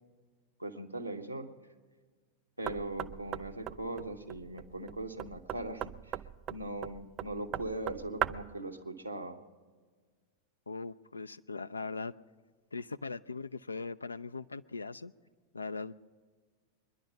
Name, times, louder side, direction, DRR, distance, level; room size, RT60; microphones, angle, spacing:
voice 1, 0.6-1.5 2.6-6.2 6.5-9.4, right 2 dB, 90° right, 3 dB, 1.1 m, -40 dB
Knock, 2.7-8.6, right 11 dB, 30° right, 0.4 m, -39 dB
voice 2, 10.7-12.1 12.7-15.1 15.5-15.9, left 4 dB, 80° left, 14 dB, 0.4 m, -40 dB
23.5 x 11.0 x 5.4 m, 1.5 s
figure-of-eight pair, 90°, 0 cm